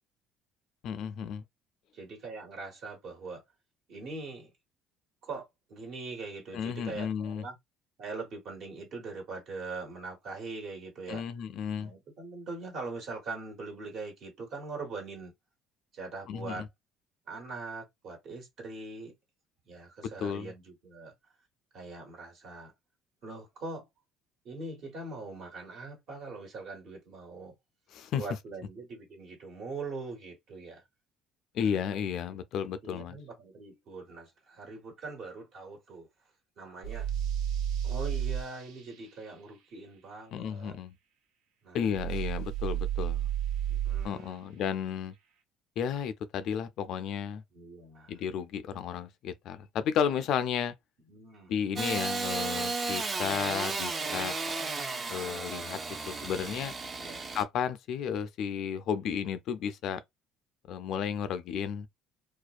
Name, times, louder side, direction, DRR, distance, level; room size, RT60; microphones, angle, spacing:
voice 1, 0.8-1.4 6.5-7.4 11.1-11.9 16.3-16.7 20.2-20.5 27.9-28.2 31.5-33.2 40.3-41.0 41.7-43.3 44.0-45.1 45.8-47.4 48.1-50.7 51.5-54.3 55.1-55.8 56.0-56.7 57.3-60.0 60.7-61.9, left 8 dB, 65° left, 0.3 m, -33 dB
voice 2, 1.9-3.4 3.9-4.5 5.2-7.6 8.0-11.3 11.8-15.3 15.9-16.7 17.3-19.1 19.7-21.1 21.7-22.7 23.2-23.9 24.4-27.5 28.2-30.8 31.6-31.8 32.8-36.1 36.6-37.1 37.8-40.8 41.6-41.9 43.7-44.5 47.5-48.2 51.1-51.5 53.1-53.3 57.0-57.3, right 3 dB, 60° right, 1.3 m, -42 dB
sound 1, 36.8-38.4 41.9-44.1, right 10 dB, 85° right, 0.5 m, -31 dB
Engine starting / Sawing, 51.8-57.4, right 3 dB, 30° right, 0.5 m, -34 dB
2.4 x 2.1 x 2.4 m
supercardioid pair, 85°, 0 cm